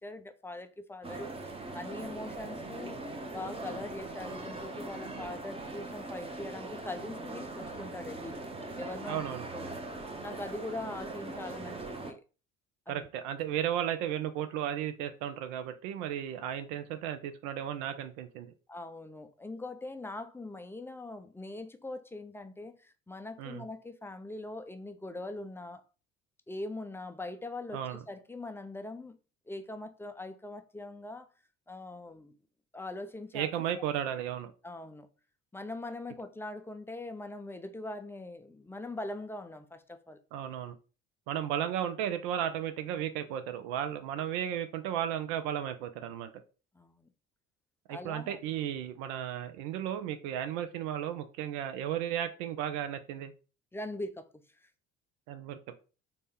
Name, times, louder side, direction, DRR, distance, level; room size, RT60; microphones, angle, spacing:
voice 1, 0.0-3.0 3.3-8.4 8.8-9.2 9.5-9.8 10.2-12.2 12.9-13.1 18.7-25.8 26.5-29.2 29.5-31.3 31.7-32.3 32.7-33.5 34.6-35.1 35.5-40.2 46.7-47.1 47.9-48.4 53.7-54.3 54.5-54.7, left 2 dB, 5° left, 0.4 m, -42 dB
sound 1, 1.0-12.1, right 2 dB, 15° right, 0.7 m, -41 dB
voice 2, 9.1-9.5 12.9-18.5 23.4-23.6 27.7-28.0 33.3-34.5 40.3-40.7 41.3-46.3 47.9-53.3 55.3-55.6, right 10 dB, 70° right, 0.6 m, -34 dB
3.9 x 2.2 x 3.5 m
hypercardioid pair, 60°, 37 cm